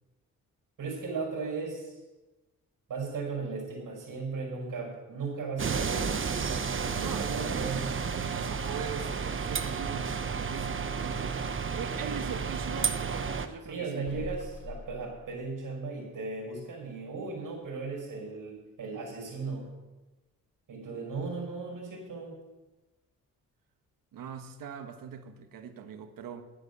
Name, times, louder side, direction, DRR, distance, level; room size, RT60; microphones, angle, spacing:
voice 1, 0.8-2.0 2.9-6.1 6.5-7.9 13.7-19.7 20.7-22.4, right 4 dB, 75° right, -1 dB, 5.3 m, -36 dB
sound 1, 5.6-13.5, right 5 dB, 40° right, 0.9 m, -32 dB
voice 2, 7.0-7.7 8.1-14.4 24.1-26.4, right 7 dB, 90° right, 8 dB, 1.3 m, -41 dB
sound 2, 13.5-15.8 16.2-16.3 16.8-16.9 17.4-17.7 18.0-18.1 18.7-18.8, left 4 dB, 45° left, 2.9 m, -50 dB
11.0 x 10.5 x 6.7 m, 1.1 s
cardioid pair, 75°, 33 cm